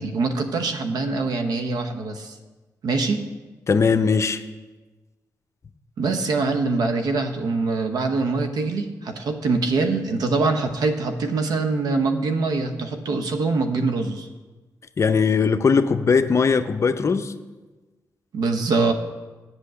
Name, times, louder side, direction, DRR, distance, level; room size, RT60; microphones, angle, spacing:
voice 1, 0.0-2.3 2.8-3.2 6.0-14.3 18.3-18.9, right 3 dB, 85° right, 0.9 m, -24 dB
voice 2, 3.7-4.4 15.0-17.3, left 5 dB, 45° left, 0.6 m, -19 dB
8.1 x 6.0 x 7.5 m
cardioid pair, 75°, 6 cm